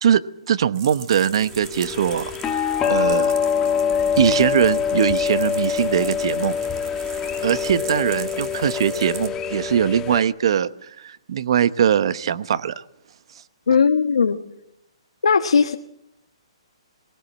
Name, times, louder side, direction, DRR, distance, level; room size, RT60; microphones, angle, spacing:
voice 1, 0.0-3.3 4.2-6.6 7.4-10.7 11.0-12.8, right 8 dB, 55° right, 15 dB, 1.0 m, -21 dB
sound 1, 0.7-9.3, right 9 dB, 40° right, 2.3 m, -40 dB
sound 2, 1.4-10.2, left 7 dB, 15° left, 1.3 m, -24 dB
voice 2, 13.7-14.4 15.2-15.7, left 5 dB, 85° left, 5 dB, 1.3 m, -17 dB
20.0 x 18.5 x 7.4 m, 0.84 s
hypercardioid pair, 155°, 3 cm